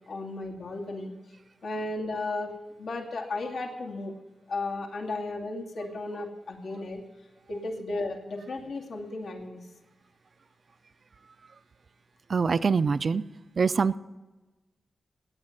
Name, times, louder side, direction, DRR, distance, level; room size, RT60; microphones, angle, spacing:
voice 1, 0.1-1.1 1.6-2.5 2.8-4.1 4.5-7.0 7.5-9.6, left 2 dB, 85° left, -1 dB, 2.5 m, -34 dB
voice 2, 12.3-13.2 13.6-14.0, right 5 dB, 45° right, 14 dB, 0.4 m, -24 dB
18.5 x 8.5 x 6.6 m, 1.2 s
wide cardioid pair, 150°, 0 cm